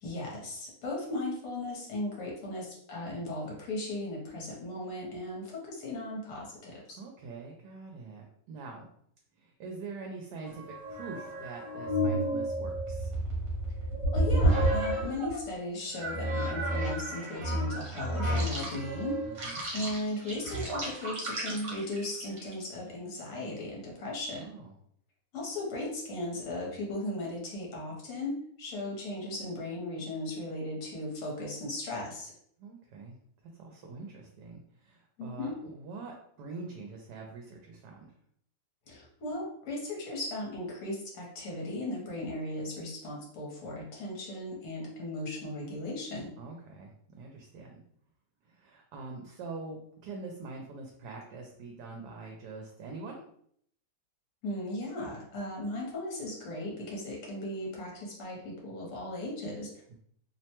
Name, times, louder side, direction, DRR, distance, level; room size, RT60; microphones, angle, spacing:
voice 1, 0.0-7.0 14.1-19.2 19.7-24.5 25.3-32.3 35.2-35.6 38.9-46.3 54.4-59.7, left 1 dB, 75° left, -3 dB, 1.4 m, -37 dB
voice 2, 7.0-8.9 9.3-13.1 19.2-19.6 24.3-24.7 32.6-33.2 33.4-38.1 46.4-47.8 48.4-53.2, right 3 dB, 80° right, 1 dB, 1.1 m, -44 dB
sound 1, 10.5-15.4 16.0-22.6, right 1 dB, 60° right, 1.2 m, -31 dB
3.1 x 2.1 x 2.9 m, 0.65 s
omnidirectional pair, 1.8 m